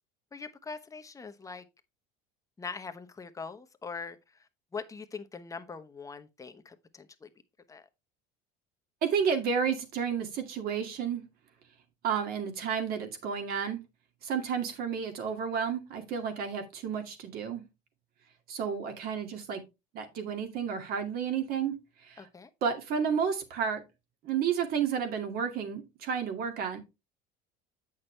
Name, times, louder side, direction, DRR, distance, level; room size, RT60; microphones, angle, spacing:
voice 1, 0.3-1.6 2.6-7.3 7.7-7.8 22.2-22.5, left 5 dB, 20° left, 1.0 m, -42 dB
voice 2, 9.0-11.2 12.0-13.8 14.2-17.6 18.5-19.6 19.9-21.8 22.0-22.3 22.6-23.8 24.2-26.8, right 7 dB, 55° right, 2.2 m, -31 dB
8.5 x 6.2 x 3.3 m
supercardioid pair, 115°, 18 cm